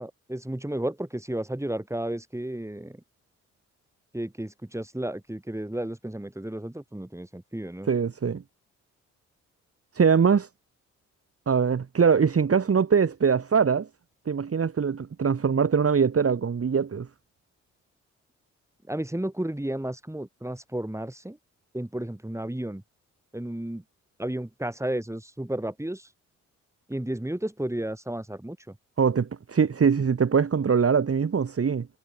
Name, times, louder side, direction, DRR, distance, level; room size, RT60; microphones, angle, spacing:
voice 1, 0.0-3.0 4.1-7.9 18.9-21.4 21.7-22.8 23.3-23.8 24.2-26.1 26.9-28.8, right 1 dB, 10° right, 5.3 m, -33 dB
voice 2, 7.9-8.4 9.9-10.5 11.5-13.9 14.3-17.1 29.0-31.9, right 6 dB, 40° right, 2.0 m, -22 dB
hypercardioid pair, 45°, 36 cm